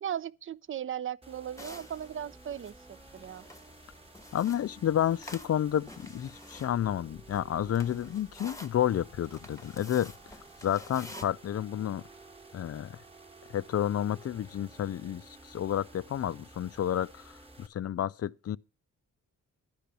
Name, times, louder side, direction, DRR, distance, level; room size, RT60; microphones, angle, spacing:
voice 1, 0.0-3.4, right 9 dB, 35° right, 0.4 m, -37 dB
sound 1, 1.2-17.7, right 2 dB, 15° right, 1.1 m, -53 dB
sound 2, 1.6-11.3, left 1 dB, 10° left, 1.0 m, -50 dB
voice 2, 4.3-10.1 10.6-12.0 12.5-13.0 13.5-18.6, left 10 dB, 45° left, 0.4 m, -30 dB
10.5 x 5.0 x 6.8 m
supercardioid pair, 50°, 35 cm